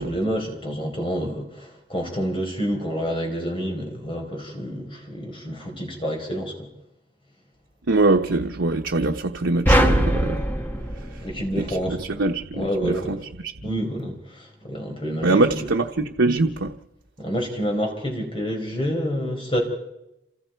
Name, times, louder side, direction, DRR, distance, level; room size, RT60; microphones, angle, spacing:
voice 1, 0.0-6.7 11.2-12.0 12.5-13.2 13.6-15.7 17.2-19.6, equal, 25° left, 4.5 m, -28 dB
voice 2, 7.9-10.4 10.9-11.3 11.6-13.5 15.2-16.7, right 2 dB, 90° right, 1.0 m, -23 dB
sound 1, 9.7-12.1, equal, 10° left, 1.2 m, -21 dB
28.0 x 27.5 x 4.6 m
head